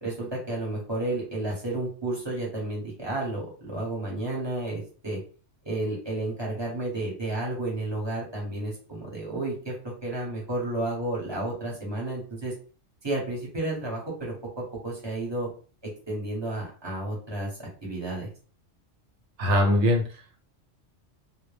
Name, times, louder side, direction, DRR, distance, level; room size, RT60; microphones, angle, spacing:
voice 1, 0.0-5.2 5.6-12.5 13.0-15.5 16.1-18.3, right 2 dB, 25° right, -3 dB, 0.8 m, -32 dB
voice 2, 19.4-20.4, left 1 dB, 70° right, 2 dB, 0.9 m, -22 dB
2.1 x 2.1 x 3.2 m, 0.39 s
omnidirectional pair, 1.3 m